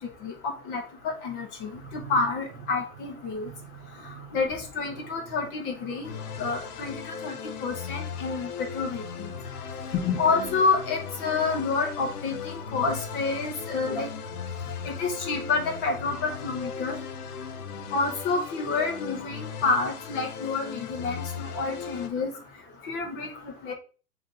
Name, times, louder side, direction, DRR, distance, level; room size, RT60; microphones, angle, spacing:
voice 1, 1.2-3.5 4.3-6.1 6.4-6.9 7.2-7.3 7.6-9.0 10.0-14.1 14.9-17.0 17.9-22.3 22.9-23.3 23.6-23.7, left 4 dB, 25° left, 0.8 m, -28 dB
voice 2, 1.7-2.6 2.9-3.0 3.4-4.6 5.0-5.4 6.0-6.4 10.2-10.7, right 8 dB, 55° right, 0.9 m, -45 dB
sound 1, 6.0-22.1, left 7 dB, 75° left, 0.7 m, -38 dB
sound 2, 8.6-17.9, left 1 dB, 40° left, 1.7 m, -44 dB
7.1 x 2.7 x 2.5 m
hypercardioid pair, 135°, 46 cm